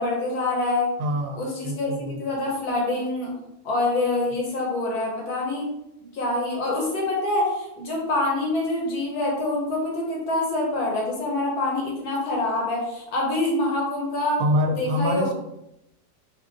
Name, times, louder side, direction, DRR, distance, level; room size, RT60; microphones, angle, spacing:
voice 1, 0.0-0.9 1.3-3.3 3.7-5.7 6.1-14.4 14.8-15.3, left 2 dB, 75° left, -2 dB, 1.8 m, -26 dB
voice 2, 1.0-2.4 14.4-15.3, equal, 70° right, 3 dB, 0.9 m, -26 dB
4.9 x 2.5 x 3.7 m, 0.84 s
omnidirectional pair, 1.7 m